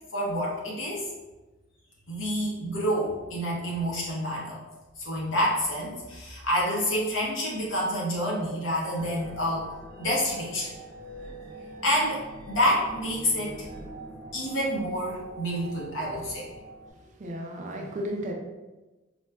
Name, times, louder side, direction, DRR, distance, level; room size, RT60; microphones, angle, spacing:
voice 1, 0.1-1.1 2.1-4.6 5.0-9.7 10.0-10.7 11.8-13.7 14.3-16.5, equal, 80° left, -4 dB, 0.9 m, -28 dB
sound 1, 8.9-16.9, right 2 dB, 75° right, 0.8 m, -44 dB
voice 2, 17.0-18.3, equal, 40° right, 1 dB, 0.4 m, -34 dB
4.2 x 2.1 x 2.3 m, 1.2 s
head